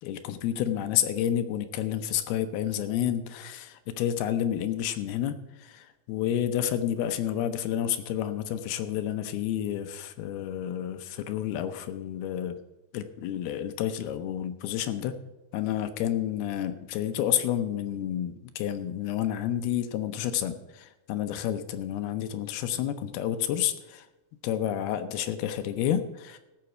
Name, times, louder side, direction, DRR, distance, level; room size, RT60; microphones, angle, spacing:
voice 1, 0.0-12.6 12.9-15.2 15.5-24.1 24.4-26.4, left 10 dB, 80° left, 9 dB, 2.5 m, -30 dB
15.0 x 5.9 x 7.6 m, 1.0 s
omnidirectional pair, 4.8 m